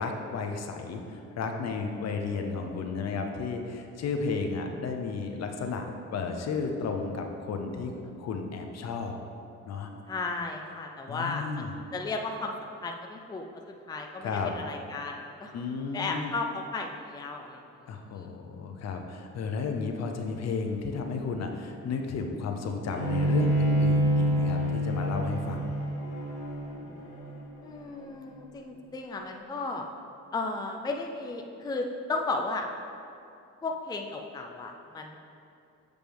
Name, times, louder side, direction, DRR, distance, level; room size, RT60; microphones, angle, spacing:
voice 1, 0.0-5.8 6.1-7.9 8.2-9.1 9.7-9.9 11.1-11.7 14.2-14.5 15.5-16.3 17.9-25.7, left 4 dB, 60° left, 4 dB, 0.7 m, -33 dB
voice 2, 10.1-15.6 15.9-17.6 18.1-18.3 27.6-29.9 30.3-32.7 33.6-35.2, left 3 dB, 15° left, 2 dB, 0.4 m, -35 dB
Bowed string instrument, 22.9-28.2, equal, 85° left, 1.3 m, -27 dB
7.5 x 5.1 x 3.4 m, 2.6 s
cardioid pair, 90°, 30 cm